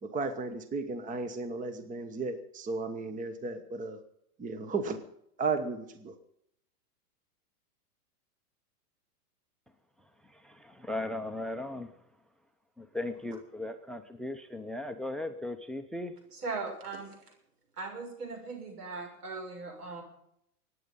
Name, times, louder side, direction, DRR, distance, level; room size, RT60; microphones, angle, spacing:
voice 1, 0.0-4.0 4.4-5.0 5.4-6.1, right 3 dB, 15° right, 9 dB, 1.3 m, -34 dB
voice 2, 10.3-11.9 12.8-16.1, left 2 dB, ahead, 9 dB, 0.6 m, -37 dB
voice 3, 16.3-17.2 17.8-20.0, right 4 dB, 80° right, 1 dB, 6.9 m, -39 dB
23.5 x 9.7 x 5.5 m, 0.75 s
hypercardioid pair, 120°, 45 cm